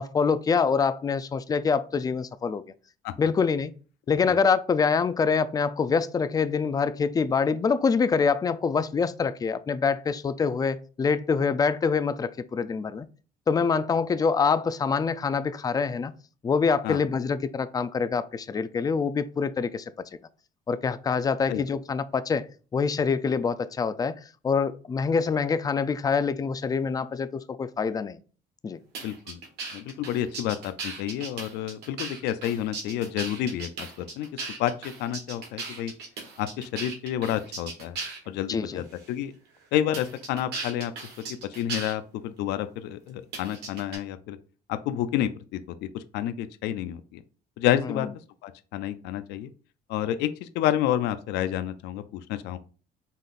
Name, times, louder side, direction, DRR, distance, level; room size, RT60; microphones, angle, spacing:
voice 1, 0.0-2.6 3.2-3.7 4.1-13.1 13.5-16.1 16.4-19.9 20.7-24.1 24.4-28.2 28.6-28.8 38.5-38.8, left 5 dB, 20° left, 0.4 m, -25 dB
sound 1, 28.9-38.3 38.9-39.1 39.9-41.9 43.3-44.0, right 4 dB, 80° right, 1.7 m, -37 dB
voice 2, 29.0-29.4 29.7-34.7 35.0-35.9 36.4-38.0 38.3-39.3 39.7-40.9 41.6-44.4 44.7-47.2 47.6-48.1 48.4-49.5 49.9-52.6, left 11 dB, 85° left, 0.4 m, -29 dB
5.4 x 3.9 x 2.5 m
cardioid pair, 110°, 17 cm